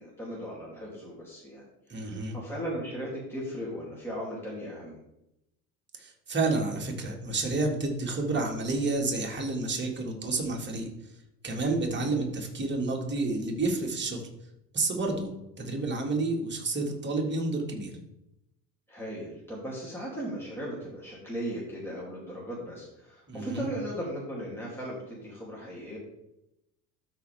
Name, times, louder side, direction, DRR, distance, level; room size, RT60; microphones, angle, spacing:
voice 1, 0.0-1.6 1.9-5.0 11.8-12.1 18.9-26.0, equal, 5° left, -5 dB, 2.7 m, -37 dB
voice 2, 1.9-2.4 6.0-10.9 11.4-14.3 14.7-17.9 23.3-23.7, right 3 dB, 20° right, 0 dB, 2.1 m, -30 dB
12.5 x 4.5 x 3.5 m, 0.87 s
hypercardioid pair, 70°, 50 cm